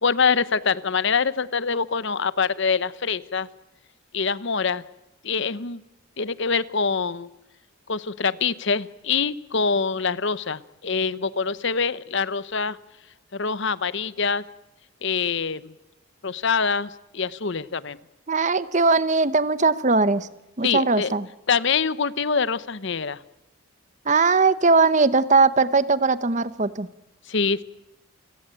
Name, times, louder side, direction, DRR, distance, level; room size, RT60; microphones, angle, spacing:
voice 1, 0.0-3.5 4.1-4.8 5.2-5.8 6.2-7.3 7.9-12.8 13.3-14.4 15.0-15.7 16.2-18.0 20.6-21.1 21.5-23.2 27.3-27.6, left 5 dB, 55° left, 18 dB, 0.8 m, -24 dB
voice 2, 18.3-20.3 20.6-21.3 24.1-26.9, right 4 dB, 35° right, 16 dB, 0.9 m, -20 dB
29.5 x 17.0 x 8.9 m, 0.97 s
head